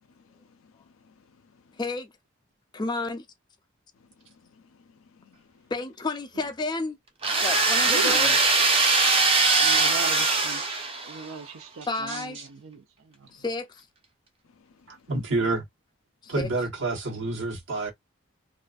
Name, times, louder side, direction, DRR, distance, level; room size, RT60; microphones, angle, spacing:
voice 1, 0.0-1.8 3.9-5.7 9.1-9.4 13.2-13.4 14.4-15.1, left 5 dB, 85° left, 0.4 m, -61 dB
voice 2, 1.8-2.1 2.7-3.3 5.7-7.0 7.4-8.3 11.9-12.4 13.3-13.8 16.4-16.5, left 3 dB, 20° left, 0.4 m, -31 dB
sound 1, 7.2-11.3, right 3 dB, 25° right, 0.6 m, -21 dB
voice 3, 7.8-8.4 9.6-10.6 11.1-12.8, right 4 dB, 90° right, 0.5 m, -37 dB
voice 4, 12.1-12.5 14.9-15.6 16.3-17.9, right 2 dB, 65° right, 1.2 m, -29 dB
2.5 x 2.4 x 2.3 m
head